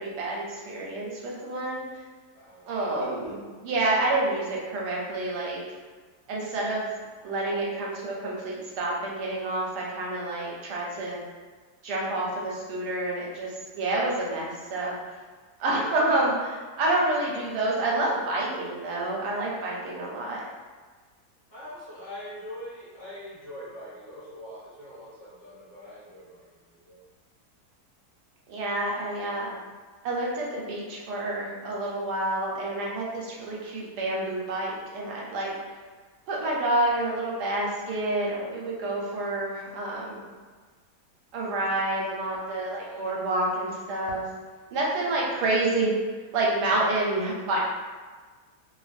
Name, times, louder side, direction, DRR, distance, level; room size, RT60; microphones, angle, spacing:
voice 1, 0.0-2.0 2.7-5.6 6.3-6.9 7.2-11.2 11.8-15.0 15.6-20.4 28.5-29.5 30.0-35.5 36.3-40.2 41.3-44.2 44.7-45.9 46.3-47.6, right 2 dB, 85° right, -3 dB, 1.2 m, -28 dB
voice 2, 2.3-2.7 20.0-20.3 21.5-27.0 42.7-43.3 44.9-45.3 46.6-46.9, left 1 dB, 40° left, -11 dB, 1.1 m, -44 dB
2.6 x 2.5 x 2.4 m, 1.4 s
omnidirectional pair, 1.7 m